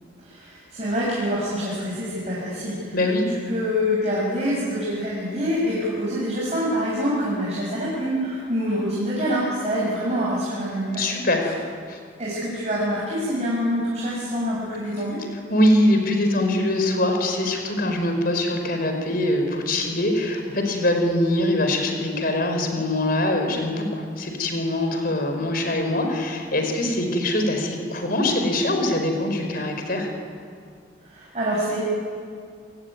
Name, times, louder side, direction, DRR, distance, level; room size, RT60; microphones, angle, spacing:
voice 1, 0.2-3.0 3.3-11.0 12.2-15.2 31.1-31.8, equal, 35° right, -5 dB, 6.9 m, -26 dB
voice 2, 2.9-3.3 11.0-11.6 11.9-12.0 15.5-30.1, left 1 dB, 50° left, 4 dB, 5.2 m, -23 dB
29.0 x 21.0 x 9.5 m, 2.2 s
head